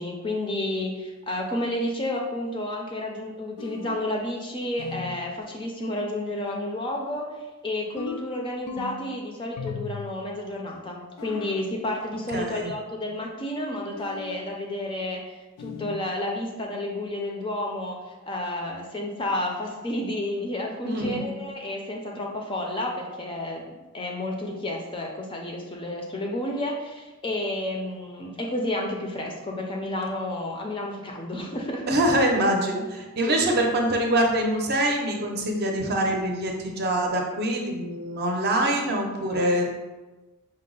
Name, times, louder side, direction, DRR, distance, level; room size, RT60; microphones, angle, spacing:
voice 1, 0.0-7.3 7.6-18.0 18.3-23.6 23.9-31.9 33.2-33.3, left 1 dB, 20° left, 0 dB, 0.4 m, -31 dB
Menu sounds, 3.6-4.1 4.8-5.3 8.0-9.2 9.6-10.2 11.2-11.7 14.0-14.5 15.6-16.1, left 6 dB, 90° left, 0.3 m, -37 dB
voice 2, 12.3-12.7 20.8-21.3 31.9-39.7, right 1 dB, 45° right, 1 dB, 0.6 m, -24 dB
5.3 x 2.0 x 3.8 m, 1.1 s
head